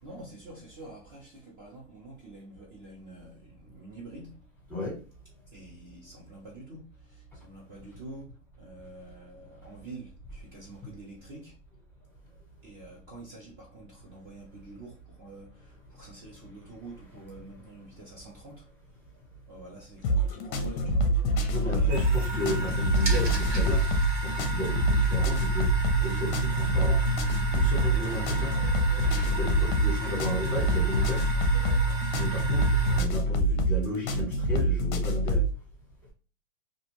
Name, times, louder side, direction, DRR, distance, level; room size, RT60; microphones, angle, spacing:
voice 1, 0.0-4.5 5.5-11.6 12.6-18.7 19.5-21.2 21.7-22.4 31.3-32.1, right 2 dB, 25° right, 0.7 m, -47 dB
sound 1, 20.0-35.5, right 1 dB, 40° left, 0.5 m, -26 dB
voice 2, 21.5-23.8 24.2-25.7 26.0-27.0 27.5-28.6 28.9-31.2 32.1-35.4, left 1 dB, 5° left, 1.0 m, -34 dB
sound 2, 21.9-33.0, right 2 dB, 70° right, 1.4 m, -30 dB
2.6 x 2.3 x 3.0 m
supercardioid pair, 155°, 37 cm